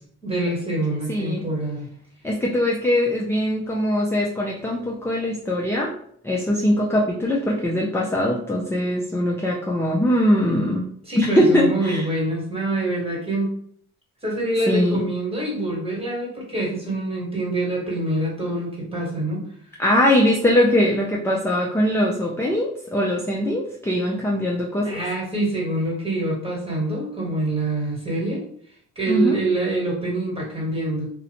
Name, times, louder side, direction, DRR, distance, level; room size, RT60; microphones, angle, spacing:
voice 1, 0.2-1.9 11.0-13.5 14.2-19.5 24.8-28.4 28.9-31.1, right 2 dB, 20° right, -3 dB, 1.4 m, -25 dB
voice 2, 1.1-1.4 2.2-5.9 6.2-10.8 11.2-12.0 14.7-15.0 19.8-25.0 29.1-29.4, left 1 dB, 10° left, -3 dB, 0.4 m, -21 dB
2.5 x 2.1 x 2.9 m, 0.63 s
cardioid pair, 75°, 31 cm